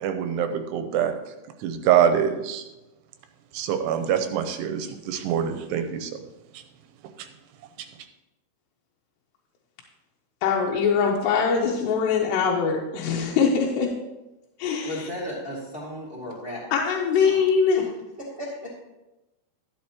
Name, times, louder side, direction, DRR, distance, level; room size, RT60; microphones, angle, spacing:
voice 1, 0.0-1.1 1.6-2.6 3.5-6.1 7.2-7.3, right 9 dB, 85° right, 7 dB, 2.6 m, -24 dB
voice 2, 10.4-13.9 14.6-15.1 16.7-17.8, left 6 dB, 85° left, -1 dB, 3.0 m, -22 dB
voice 3, 14.8-16.6 17.2-17.4 18.2-18.7, equal, 35° right, -6 dB, 0.8 m, -35 dB
13.0 x 9.0 x 2.9 m, 1.0 s
omnidirectional pair, 5.0 m